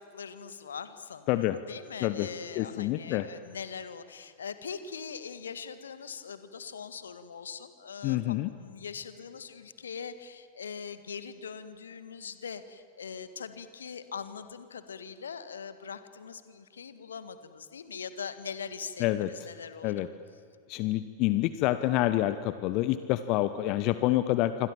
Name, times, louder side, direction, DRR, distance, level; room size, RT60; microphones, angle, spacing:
voice 1, 0.1-19.9, left 6 dB, 70° left, 12 dB, 1.8 m, -42 dB
voice 2, 2.6-3.3 8.0-8.5 19.0-19.3 19.8-20.1 20.7-24.7, left 15 dB, 40° left, 13 dB, 0.9 m, -27 dB
27.5 x 25.5 x 7.5 m, 2.4 s
figure-of-eight pair, 90°, 0 cm